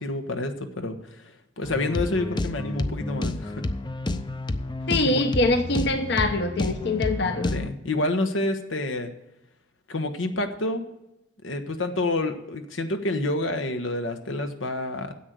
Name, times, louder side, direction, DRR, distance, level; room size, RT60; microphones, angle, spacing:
voice 1, 0.0-3.7 5.0-5.2 7.3-9.1 9.9-10.8 11.4-15.1, left 2 dB, 90° left, 6 dB, 1.2 m, -28 dB
sound 1, 1.6-7.7, left 2 dB, 25° left, 0.5 m, -30 dB
voice 2, 4.9-7.5, left 2 dB, 60° left, 6 dB, 0.9 m, -24 dB
9.9 x 8.1 x 7.8 m, 0.91 s
head